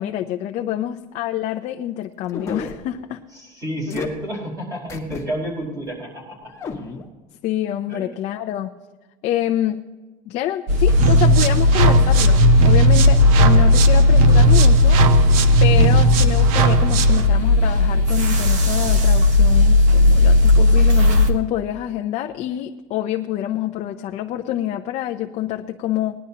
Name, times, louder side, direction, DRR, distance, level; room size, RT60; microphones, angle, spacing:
voice 1, 0.0-3.2 7.4-8.7 9.2-9.8 10.3-15.3 15.6-26.1, left 12 dB, 40° left, 4 dB, 0.6 m, -26 dB
Dog Sounds Gulp Chew Swallow, 2.3-2.8 3.9-4.1 4.9-5.2 5.6-5.7 6.5-7.0, left 5 dB, 15° left, 1.5 m, -31 dB
voice 2, 3.4-6.5 7.9-8.0 15.4-15.9, equal, 20° right, -1 dB, 4.9 m, -30 dB
sound 1, 10.7-21.3, left 2 dB, 45° right, 1.4 m, -15 dB
sound 2, 10.9-17.3, right 8 dB, 85° right, 0.9 m, -19 dB
19.5 x 11.5 x 2.9 m, 1.2 s
cardioid pair, 160°, 17 cm